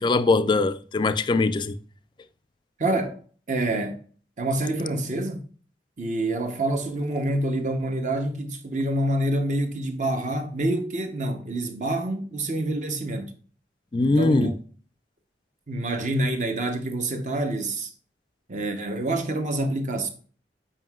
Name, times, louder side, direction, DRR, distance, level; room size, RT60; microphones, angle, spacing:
voice 1, 0.0-1.8 13.9-14.5, left 3 dB, 25° left, 0.3 m, -21 dB
voice 2, 2.8-3.2 3.5-4.0 4.4-5.4 6.0-13.3 14.0-14.5 15.7-17.9 18.5-20.1, right 1 dB, 45° right, 0.8 m, -27 dB
7.5 x 5.5 x 2.3 m
head